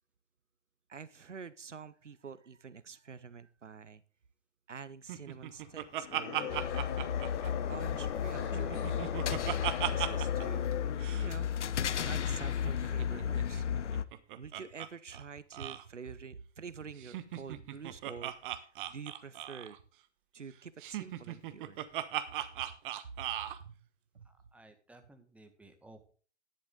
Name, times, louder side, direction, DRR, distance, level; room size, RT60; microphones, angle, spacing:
voice 1, 0.9-4.0 4.7-6.8 7.7-10.7 11.1-11.5 11.9-13.6 14.3-19.8 20.3-21.8 22.6-22.7 23.2-23.3 23.6-23.8 24.1-24.3, right 6 dB, 90° right, 17 dB, 0.8 m, -47 dB
Laughter, 5.1-8.0 8.4-10.5 10.7-10.8 11.0-11.3 12.5-14.9 15.1-15.2 15.5-15.8 17.0-19.8 20.8-23.6, right 12 dB, 45° right, 1.2 m, -38 dB
sound 1, 5.9-11.3, left 10 dB, 45° left, 1.4 m, -40 dB
sound 2, 6.5-14.0, left 8 dB, 75° left, 0.7 m, -34 dB
voice 2, 24.2-26.1, right 2 dB, 5° right, 5 dB, 1.6 m, -57 dB
11.5 x 10.5 x 3.8 m, 0.40 s
figure-of-eight pair, 110°, 35 cm